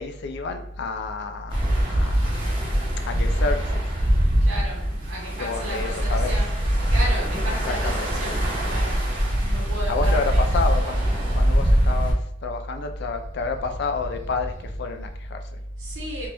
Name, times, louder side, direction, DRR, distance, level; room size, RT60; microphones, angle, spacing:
voice 1, 0.0-2.5 3.0-4.1 5.4-6.3 7.5-8.1 9.9-11.1 11.3-15.6, left 4 dB, 55° left, 6 dB, 0.4 m, -30 dB
sound 1, 1.5-12.1, equal, 25° right, 0.9 m, -22 dB
voice 2, 4.4-6.5 6.9-9.0 9.5-10.6 13.8-14.3 14.7-14.8 15.8-16.3, equal, 70° right, -5 dB, 1.0 m, -32 dB
3.6 x 2.9 x 2.5 m, 0.73 s
head